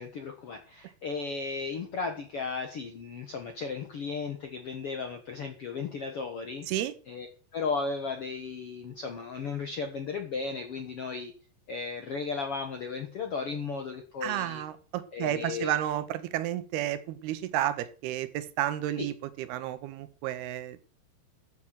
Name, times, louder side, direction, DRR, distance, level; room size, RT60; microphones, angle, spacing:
voice 1, 0.0-6.7 7.1-7.3 7.5-11.3 11.7-14.6 15.1-15.7 19.0-19.1, left 4 dB, 65° left, 5 dB, 1.4 m, -35 dB
voice 2, 14.2-20.8, right 12 dB, 80° right, 14 dB, 2.8 m, -31 dB
13.0 x 7.2 x 6.2 m, 0.40 s
omnidirectional pair, 4.6 m